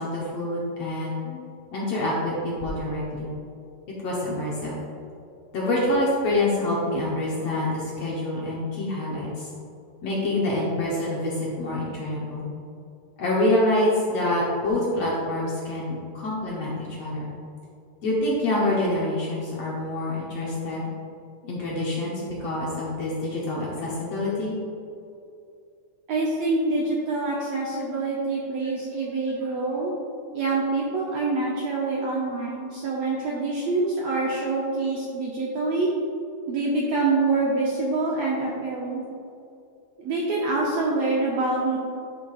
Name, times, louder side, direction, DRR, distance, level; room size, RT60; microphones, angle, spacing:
voice 1, 0.0-1.4 1.7-3.3 4.0-4.8 5.5-9.5 10.0-12.4 13.2-17.3 18.0-20.9 21.4-24.6, left 1 dB, 65° left, -5 dB, 1.7 m, -26 dB
voice 2, 26.1-29.9 30.3-35.9 36.5-39.0 40.0-41.8, right 3 dB, 75° right, -4 dB, 1.6 m, -26 dB
11.0 x 5.9 x 2.4 m, 2.6 s
omnidirectional pair, 3.8 m